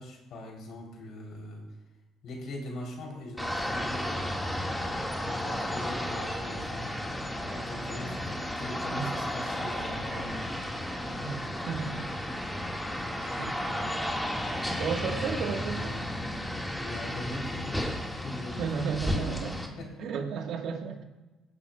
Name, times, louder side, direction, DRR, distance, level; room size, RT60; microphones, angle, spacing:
voice 1, 0.0-1.6 2.2-7.2 7.5-10.6 16.7-18.7 19.2-19.4 19.6-20.1, left 1 dB, 60° left, 0 dB, 3.3 m, -41 dB
sound 1, 3.4-19.7, left 1 dB, 5° left, 1.8 m, -33 dB
voice 2, 11.7-12.0 13.2-13.9 14.8-16.0 18.6-19.6 20.0-21.0, right 6 dB, 60° right, 5 dB, 1.4 m, -33 dB
19.0 x 8.7 x 2.3 m, 1.2 s
hypercardioid pair, 55°, 0 cm